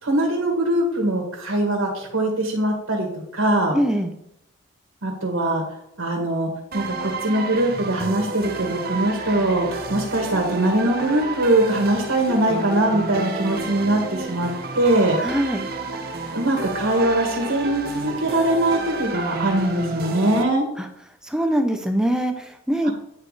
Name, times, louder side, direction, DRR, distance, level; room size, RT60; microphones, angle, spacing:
voice 1, 0.0-3.1 3.3-3.8 5.0-5.6 6.0-14.5 14.7-15.2 16.3-20.6 22.8-22.9, right 1 dB, 80° right, 1 dB, 1.9 m, -22 dB
voice 2, 3.7-4.1 15.2-15.7 21.3-22.9, equal, 5° right, 4 dB, 0.6 m, -22 dB
sound 1, 6.7-20.4, right 2 dB, 45° right, 0.8 m, -30 dB
9.9 x 4.2 x 4.9 m, 0.80 s
head